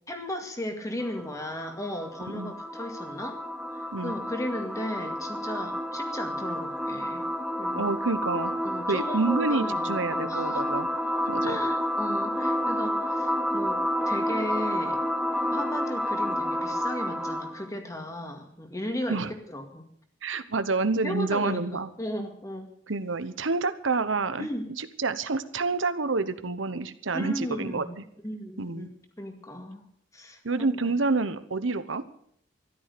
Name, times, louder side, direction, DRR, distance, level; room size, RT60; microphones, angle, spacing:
voice 1, 0.1-3.4 3.7-7.3 7.6-7.9 8.6-10.6 11.4-15.0 15.5-19.2 19.5-19.8 21.0-22.7 24.4-24.7 27.1-28.9 29.2-29.8 30.1-30.9, left 1 dB, 15° left, 5 dB, 2.0 m, -36 dB
sound 1, 1.0-17.7, equal, ahead, 1.1 m, -30 dB
voice 2, 7.8-8.5 8.9-10.9 11.3-11.6 19.1-19.3 20.2-21.9 22.9-24.5 24.8-28.0 28.6-28.9 30.4-32.0, right 3 dB, 90° right, 12 dB, 1.0 m, -28 dB
13.5 x 12.0 x 6.8 m, 0.66 s
head